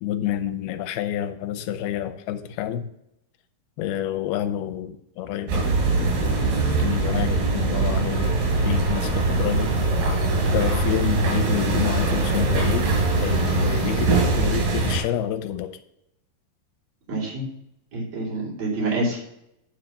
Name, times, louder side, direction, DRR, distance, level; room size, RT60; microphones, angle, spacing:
voice 1, 0.0-2.9 3.8-5.7 6.8-8.4 8.6-9.7 10.5-12.9 13.2-15.7, left 11 dB, 80° left, 8 dB, 2.5 m, -28 dB
sound 1, 5.5-15.0, right 3 dB, 90° right, 4.6 m, -22 dB
voice 2, 17.1-17.4 17.9-19.3, right 2 dB, 45° right, -4 dB, 3.9 m, -27 dB
9.2 x 4.0 x 7.0 m, 0.79 s
omnidirectional pair, 4.4 m